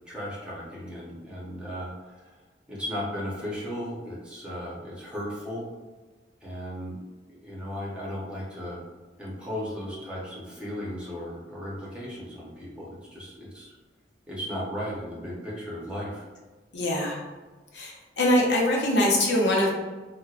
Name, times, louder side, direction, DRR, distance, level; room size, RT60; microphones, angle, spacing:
voice 1, 0.1-2.3 2.7-5.7 6.4-6.9 7.4-8.8 9.2-13.7 14.3-16.2, equal, 5° right, -7 dB, 0.8 m, -36 dB
voice 2, 16.7-17.2 17.7-19.7, left 1 dB, 80° left, -2 dB, 0.7 m, -23 dB
4.4 x 2.2 x 2.4 m, 1.3 s
head